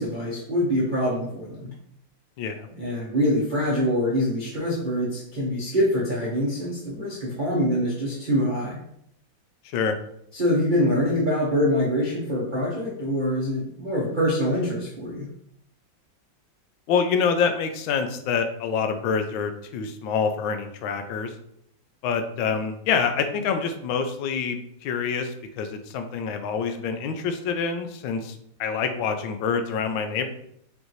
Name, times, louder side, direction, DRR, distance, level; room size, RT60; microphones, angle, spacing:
voice 1, 0.0-1.7 2.7-8.8 10.3-15.3, equal, 45° right, -8 dB, 0.6 m, -24 dB
voice 2, 9.6-10.0 16.9-21.3 22.0-30.3, left 6 dB, 80° left, 7 dB, 1.3 m, -26 dB
5.2 x 2.6 x 3.0 m, 0.71 s
omnidirectional pair, 2.1 m